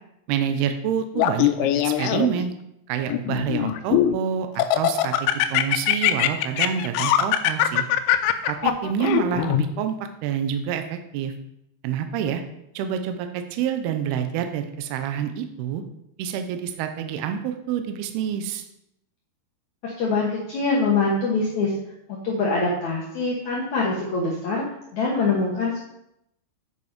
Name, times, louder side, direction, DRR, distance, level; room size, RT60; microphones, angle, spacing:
voice 1, 0.3-2.5 2.9-7.9 8.5-10.0 10.2-11.3 11.8-12.4 12.7-15.8 16.2-18.6, right 9 dB, 75° right, 7 dB, 2.5 m, -27 dB
Laughter, 1.2-2.5 3.1-4.2 4.6-9.6, left 12 dB, 90° left, 2.9 m, -21 dB
voice 2, 19.8-21.7 22.1-24.6 24.9-25.8, left 3 dB, 70° left, -3 dB, 1.8 m, -24 dB
8.3 x 6.8 x 5.1 m, 0.80 s
omnidirectional pair, 5.1 m